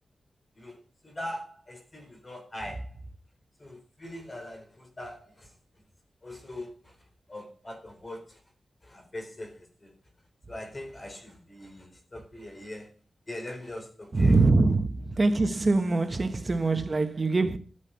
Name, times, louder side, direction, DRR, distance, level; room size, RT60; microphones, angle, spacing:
voice 1, 0.6-3.0 3.6-5.5 6.2-7.0 7.3-8.4 8.8-9.9 10.5-13.0 13.3-14.4 15.2-15.3, left 1 dB, 25° left, 4.2 m, -42 dB
voice 2, 14.1-17.6, right 3 dB, 35° right, 1.2 m, -23 dB
14.0 x 9.9 x 5.7 m
wide cardioid pair, 135°, 0 cm